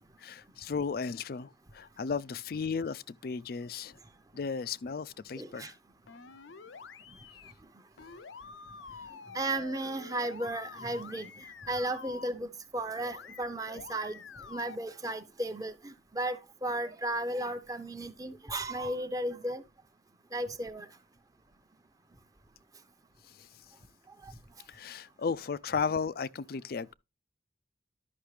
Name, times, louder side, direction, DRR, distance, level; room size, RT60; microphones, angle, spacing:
voice 1, 0.2-4.0 4.3-5.8 23.3-23.6 24.7-26.9, left 5 dB, 55° left, 0.4 m, -35 dB
voice 2, 5.4-5.7 9.3-11.3 11.7-12.5 12.7-14.2 14.5-16.4 16.6-19.6 20.3-20.9, right 1 dB, 20° right, 0.7 m, -34 dB
sound 1, 6.1-7.5 8.0-12.3 13.0-13.4 13.7-14.8, left 5 dB, 85° left, 0.7 m, -48 dB
11.5 x 5.8 x 3.2 m
head